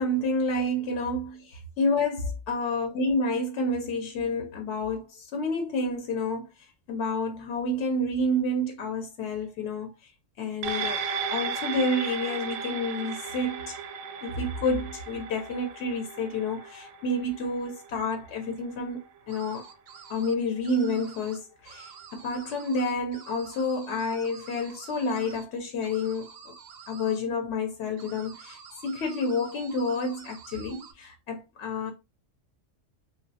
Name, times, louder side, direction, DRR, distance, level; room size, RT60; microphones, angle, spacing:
voice 1, 0.0-10.1 10.4-11.0 11.3-13.8 14.2-19.7 20.1-26.5 26.9-31.9, left 2 dB, 65° left, 0.8 m, -29 dB
sound 1, 10.6-19.3 19.7-19.8, right 5 dB, 90° right, 1.0 m, -35 dB
sound 2, 19.3-20.3 20.6-21.4 21.6-25.4 25.8-27.2 28.0-30.9, right 6 dB, 65° right, 0.7 m, -48 dB
3.0 x 2.4 x 2.7 m
omnidirectional pair, 1.3 m